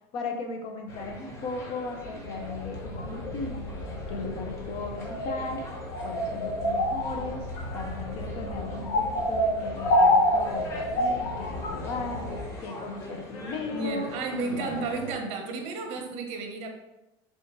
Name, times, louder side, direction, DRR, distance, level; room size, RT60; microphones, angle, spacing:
voice 1, 0.1-3.6 4.1-5.6 6.0-7.5 7.7-12.3 12.6-14.1 14.4-14.8, left 3 dB, 50° left, 4 dB, 0.6 m, -36 dB
sound 1, 0.9-15.1, equal, 25° left, 0.9 m, -43 dB
sound 2, 2.1-12.5, left 1 dB, 75° left, 1.0 m, -28 dB
voice 2, 13.7-16.7, right 3 dB, 55° right, 3 dB, 0.7 m, -32 dB
4.4 x 3.4 x 2.9 m, 0.98 s
cardioid pair, 150°, 13 cm